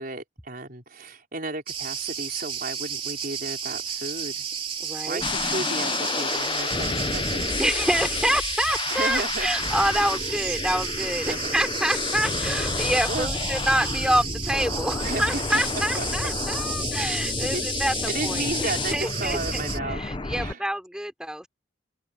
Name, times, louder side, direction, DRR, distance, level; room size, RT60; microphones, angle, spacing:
voice 1, 0.0-4.5 5.1-7.4 7.7-7.8 8.9-9.5 10.4-10.5 11.2-11.6 13.1-13.3 15.0-15.4 15.7-16.3 17.0-17.7 18.1-20.0 20.3-20.7, right 3 dB, 50° right, 5.1 m, -34 dB
Cricket, 1.7-19.8, right 7 dB, 30° right, 3.0 m, -33 dB
voice 2, 4.8-5.2 7.6-19.6 19.9-21.5, right 1 dB, 5° right, 4.1 m, -27 dB
sound 1, 5.2-20.5, left 4 dB, 25° left, 0.7 m, -29 dB
open air
head